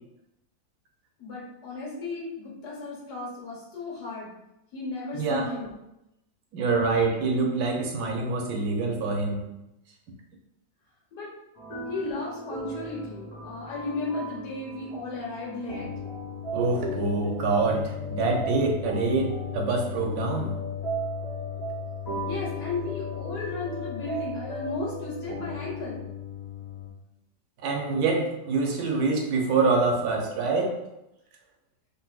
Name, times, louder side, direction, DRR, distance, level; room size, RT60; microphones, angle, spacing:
voice 1, 1.2-4.3 4.7-5.8 11.1-11.3 11.9-15.9 22.2-26.1, left 3 dB, 75° left, -4 dB, 1.5 m, -35 dB
voice 2, 5.2-5.5 6.5-9.4 16.5-20.5 27.6-30.8, right 3 dB, 75° right, 2 dB, 1.1 m, -25 dB
sound 1, 11.6-26.9, left 2 dB, 40° left, 1.3 m, -35 dB
3.9 x 2.3 x 2.3 m, 0.89 s
omnidirectional pair, 1.7 m